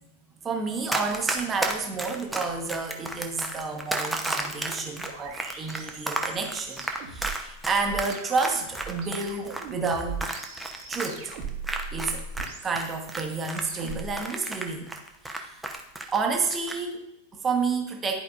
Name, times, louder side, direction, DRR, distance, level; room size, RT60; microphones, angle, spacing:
voice 1, 0.4-10.3 10.9-11.3 11.9-12.2 12.6-14.9 15.2-15.6 16.1-18.2, right 4 dB, 20° right, 3 dB, 1.1 m, -30 dB
Run, 0.9-12.5 12.8-16.2 16.5-16.8, right 1 dB, 5° right, 0.7 m, -32 dB
sound 1, 4.4-14.2, right 5 dB, 45° right, 1.2 m, -40 dB
11.0 x 4.8 x 2.5 m, 0.82 s
figure-of-eight pair, 90°, 0 cm